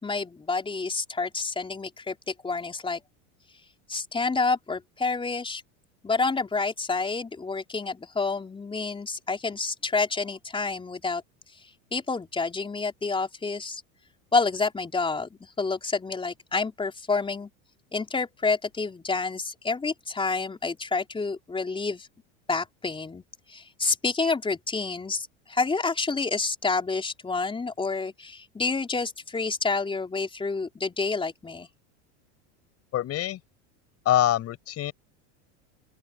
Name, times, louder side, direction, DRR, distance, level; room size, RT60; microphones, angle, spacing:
voice 1, 0.0-3.0 3.9-5.6 6.0-11.2 11.9-13.8 14.3-15.3 15.6-17.5 17.9-22.1 22.5-23.2 23.5-31.7, left 4 dB, 15° left, 4.7 m, -28 dB
voice 2, 32.9-33.4 34.1-34.9, left 12 dB, 40° left, 5.7 m, -24 dB
open air
supercardioid pair, 120°, 36 cm